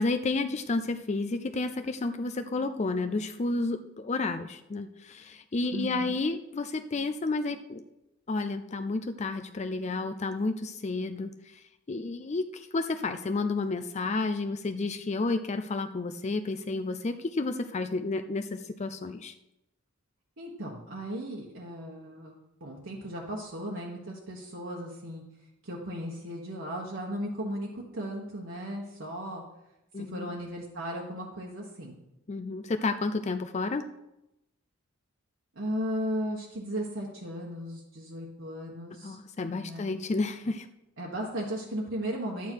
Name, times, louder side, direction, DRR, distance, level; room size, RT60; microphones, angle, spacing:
voice 1, 0.0-7.8 8.3-19.3 29.9-30.3 32.3-33.8 39.0-40.7, left 3 dB, 35° left, 9 dB, 0.4 m, -31 dB
voice 2, 5.7-6.1 20.4-22.3 22.6-25.2 25.6-29.4 30.0-32.0 35.5-39.2 39.5-39.9 41.0-42.5, equal, 60° right, -2 dB, 1.3 m, -36 dB
11.5 x 8.4 x 4.6 m, 0.90 s
head